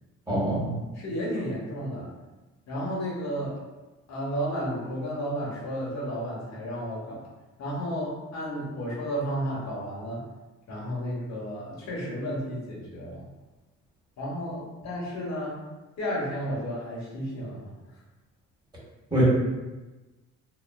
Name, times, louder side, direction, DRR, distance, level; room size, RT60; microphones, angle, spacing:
voice 1, 0.3-0.8 19.1-19.2, right 1 dB, 15° right, -8 dB, 1.4 m, -25 dB
voice 2, 0.9-2.1 2.7-3.6 4.1-7.2 7.6-10.2 10.7-13.2 14.2-15.6 16.0-17.7, equal, 65° left, -4 dB, 1.0 m, -32 dB
3.0 x 2.0 x 2.2 m, 1.1 s
cardioid pair, 90°, 30 cm